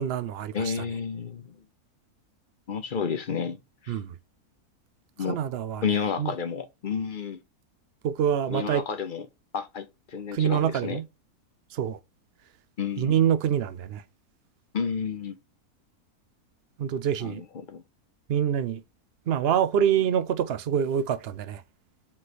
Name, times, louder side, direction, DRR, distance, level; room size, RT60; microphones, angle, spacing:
voice 1, 0.0-0.8 3.9-4.1 5.3-5.8 6.2-6.3 8.0-8.8 10.3-11.0 11.7-12.0 13.0-14.0 16.8-17.4 18.3-18.8 19.3-21.6, right 9 dB, 70° right, 0.5 m, -26 dB
voice 2, 0.5-1.5 2.7-3.6 3.8-3.9 5.2-5.4 5.8-7.4 8.5-9.3 9.5-9.9 10.1-11.0 12.8-13.2 14.7-15.4 17.2-17.8, left 6 dB, 50° left, 0.6 m, -31 dB
7.3 x 3.2 x 4.1 m
omnidirectional pair, 1.6 m